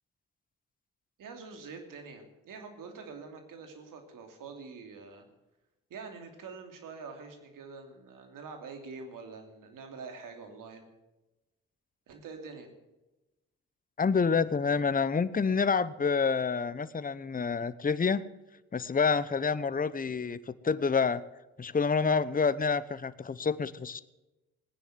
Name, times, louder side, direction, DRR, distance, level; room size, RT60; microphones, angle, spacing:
voice 1, 1.2-5.2 5.9-10.9 12.1-12.7, right 4 dB, 75° right, 5 dB, 2.9 m, -45 dB
voice 2, 14.0-18.2 18.7-21.2 21.6-24.0, left 5 dB, 25° left, 15 dB, 0.9 m, -28 dB
17.0 x 9.9 x 7.6 m, 1.0 s
supercardioid pair, 50°, 33 cm